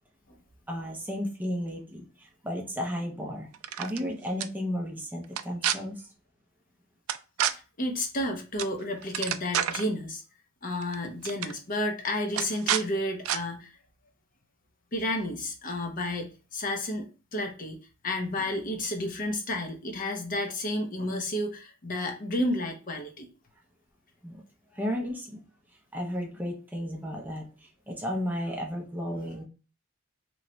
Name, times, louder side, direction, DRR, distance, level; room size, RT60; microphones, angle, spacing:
voice 1, 0.7-3.5 3.8-6.1 24.2-24.4 24.7-25.4 25.9-29.4, equal, 10° right, 0 dB, 0.5 m, -33 dB
sound 1, 3.5-4.0 4.4-4.5 5.3-5.8 7.1-7.5 8.6-8.8 9.0-9.9 10.8-11.0 11.2-11.5 12.3-12.8 13.2-13.4, right 10 dB, 85° right, 0.3 m, -28 dB
voice 2, 7.5-10.2 10.6-13.7 14.9-17.8 18.0-23.3, left 1 dB, 40° left, 4 dB, 0.6 m, -31 dB
3.0 x 2.2 x 3.8 m, 0.34 s
head